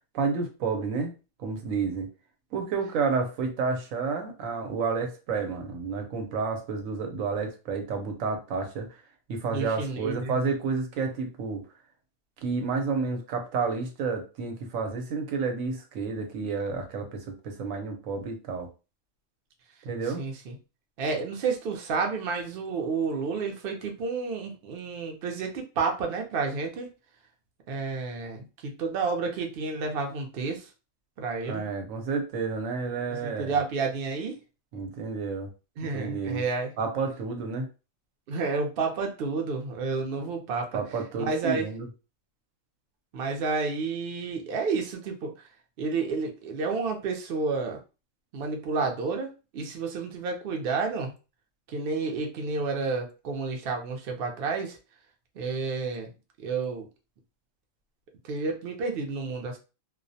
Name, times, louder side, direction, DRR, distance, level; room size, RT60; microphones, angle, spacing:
voice 1, 0.1-1.1 1.4-2.1 2.5-8.9 9.3-11.7 12.4-18.7 19.8-20.2 31.5-33.6 34.7-35.5 35.9-36.4 36.8-37.7 40.7-41.9, right 4 dB, 80° right, 4 dB, 1.0 m, -30 dB
voice 2, 9.5-10.4 20.2-20.6 21.0-26.9 27.7-30.7 31.2-31.7 33.1-34.4 35.8-36.7 38.3-40.8 41.2-41.7 43.1-45.5 45.8-47.8 48.3-51.1 51.7-54.8 55.4-56.1 56.4-56.9 58.2-59.6, right 4 dB, 60° right, 2 dB, 0.7 m, -30 dB
2.4 x 2.0 x 2.6 m, 0.31 s
omnidirectional pair, 1.4 m